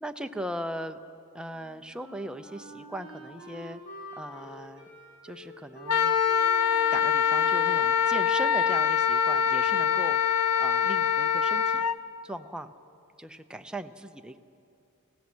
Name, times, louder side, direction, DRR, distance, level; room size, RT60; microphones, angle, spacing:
voice 1, 0.0-1.0 1.3-3.8 4.2-4.9 5.2-6.2 6.9-10.2 10.6-11.9 12.2-12.7 13.2-14.4, equal, 5° right, 7 dB, 0.6 m, -38 dB
Wind instrument woodwind instrument, 1.9-8.7, equal, 60° left, 5.5 m, -47 dB
Wind instrument woodwind instrument 2, 5.9-11.9, left 7 dB, 85° left, 0.6 m, -24 dB
26.0 x 16.0 x 6.2 m, 2.5 s
head